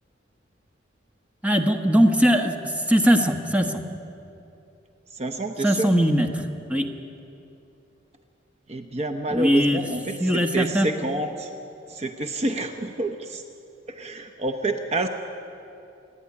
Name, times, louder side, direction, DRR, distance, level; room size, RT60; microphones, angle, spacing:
voice 1, 1.4-3.8 5.6-6.9 9.3-9.8 10.2-10.9, equal, 5° right, 4 dB, 1.2 m, -20 dB
voice 2, 5.1-5.9 8.7-11.5 11.9-13.4 13.9-15.1, right 2 dB, 35° right, 4 dB, 0.9 m, -28 dB
28.0 x 9.8 x 9.8 m, 2.7 s
head